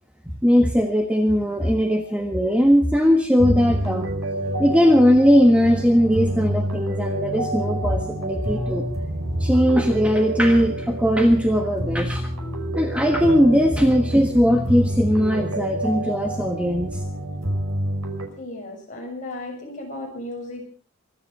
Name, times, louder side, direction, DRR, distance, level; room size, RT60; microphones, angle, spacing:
voice 1, 0.4-4.2 4.6-8.8 9.4-12.3 12.7-17.0, equal, 5° right, 4 dB, 1.4 m, -19 dB
sound 1, 3.4-18.3, right 1 dB, 80° right, 6.0 m, -27 dB
voice 2, 18.4-20.7, left 2 dB, 35° left, 0 dB, 7.2 m, -35 dB
24.5 x 10.5 x 5.5 m, 0.43 s
head